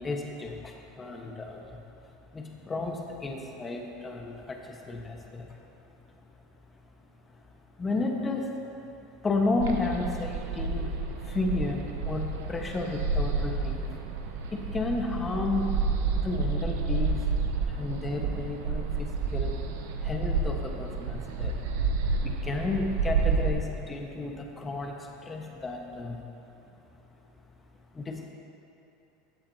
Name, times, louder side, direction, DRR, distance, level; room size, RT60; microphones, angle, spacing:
voice 1, 0.0-5.6 7.3-7.4 7.8-8.6 9.2-14.0 14.5-15.7 16.1-17.2 17.7-19.5 20.0-21.6 22.2-26.3 27.9-28.3, left 3 dB, 20° left, 1 dB, 1.3 m, -33 dB
sound 1, 9.6-23.5, right 4 dB, 80° right, 0.8 m, -30 dB
14.5 x 8.6 x 2.8 m, 2.9 s
supercardioid pair, 110°, 0 cm